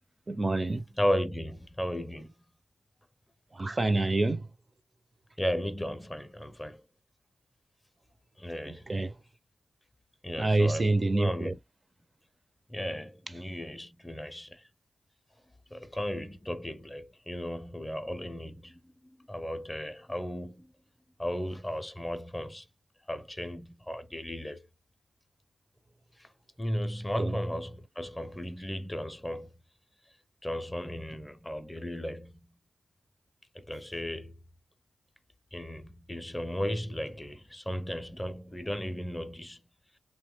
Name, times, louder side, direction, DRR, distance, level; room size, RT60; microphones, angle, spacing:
voice 1, 0.3-0.8 3.5-4.5 8.7-9.1 10.4-11.5 27.2-27.4, right 2 dB, 35° right, 0.5 m, -27 dB
voice 2, 0.9-2.3 5.4-6.8 8.4-8.9 10.2-11.6 12.7-14.6 15.7-20.7 21.2-22.7 23.1-24.7 26.2-26.3 26.6-29.5 30.4-32.5 33.5-34.3 35.5-39.6, equal, 15° left, 0.5 m, -35 dB
2.8 x 2.2 x 3.1 m
supercardioid pair, 45°, 0 cm